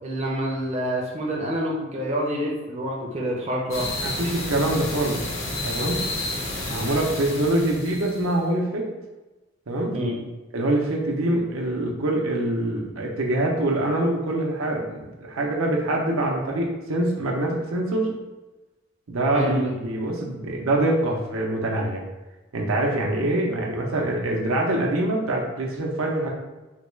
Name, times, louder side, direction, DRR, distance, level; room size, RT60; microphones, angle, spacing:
voice 1, 0.0-3.9 9.9-10.2 19.3-19.7, equal, 30° right, -3 dB, 0.5 m, -27 dB
sound 1, 3.7-8.3, left 2 dB, 75° left, 0.9 m, -31 dB
voice 2, 4.0-5.2 5.6-6.0 6.6-8.9 9.7-10.0 10.5-18.2 19.1-22.0 22.5-26.3, right 1 dB, 80° right, 0 dB, 0.6 m, -24 dB
3.4 x 2.2 x 3.1 m, 1.1 s
head